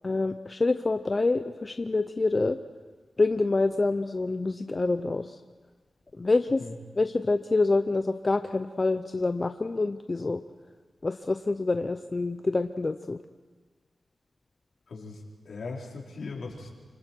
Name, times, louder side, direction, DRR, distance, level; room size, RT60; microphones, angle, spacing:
voice 1, 0.0-2.6 3.2-5.3 6.2-6.6 7.0-10.4 11.0-13.2, left 3 dB, 30° left, 8 dB, 0.7 m, -26 dB
voice 2, 14.9-16.7, left 3 dB, 70° left, -2 dB, 4.4 m, -39 dB
29.0 x 26.0 x 4.5 m, 1.4 s
wide cardioid pair, 110°, 0 cm